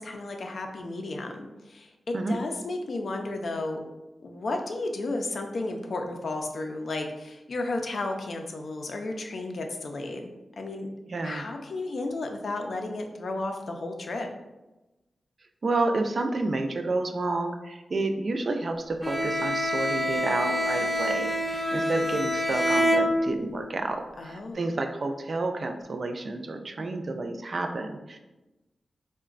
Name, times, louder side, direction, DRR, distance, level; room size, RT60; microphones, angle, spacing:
voice 1, 0.0-3.8 4.2-10.9 11.2-14.3 24.2-24.7, left 2 dB, 70° left, 4 dB, 0.4 m, -33 dB
voice 2, 11.1-11.5 15.6-28.2, right 2 dB, 60° right, 5 dB, 0.3 m, -30 dB
Bowed string instrument, 19.0-23.6, equal, ahead, 0.5 m, -26 dB
3.8 x 2.1 x 2.4 m, 1.0 s
cardioid pair, 55°, 0 cm